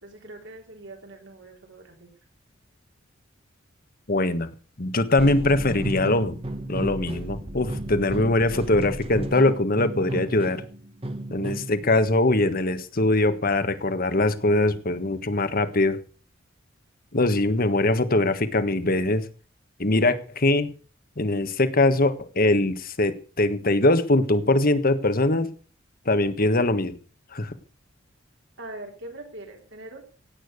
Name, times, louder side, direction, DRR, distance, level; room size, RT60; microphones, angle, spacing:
voice 1, 0.0-2.1 28.6-30.0, right 2 dB, 60° right, 4 dB, 3.6 m, -42 dB
voice 2, 4.1-4.5 4.8-6.3 6.7-10.6 11.3-16.0 17.1-19.2 19.8-20.7 21.2-25.5 26.0-26.9 27.3-27.5, left 2 dB, 45° left, 11 dB, 1.5 m, -22 dB
sound 1, 5.2-11.8, right 1 dB, 30° right, 1.4 m, -33 dB
17.0 x 8.8 x 6.6 m, 0.39 s
head